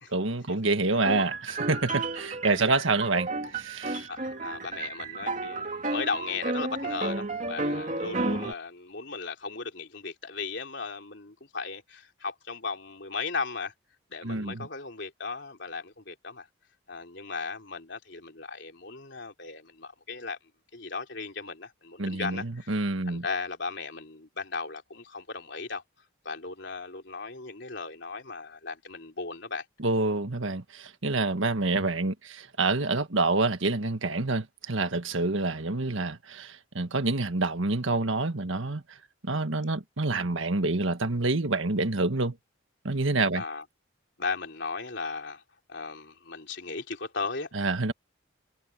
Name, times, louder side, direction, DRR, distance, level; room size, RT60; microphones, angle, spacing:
voice 1, 0.1-4.1 14.2-14.7 22.0-23.2 29.8-38.8 39.2-42.3 42.8-43.4 47.5-47.9, right 3 dB, 75° right, 1.6 m, -27 dB
sound 1, 1.0-8.5, right 2 dB, 40° right, 2.7 m, -32 dB
voice 2, 2.5-2.8 4.1-13.7 14.1-16.5 16.9-20.4 20.7-22.8 23.1-25.8 26.3-29.6 43.3-43.6 44.2-45.4 45.7-47.5, left 4 dB, 60° left, 3.6 m, -36 dB
head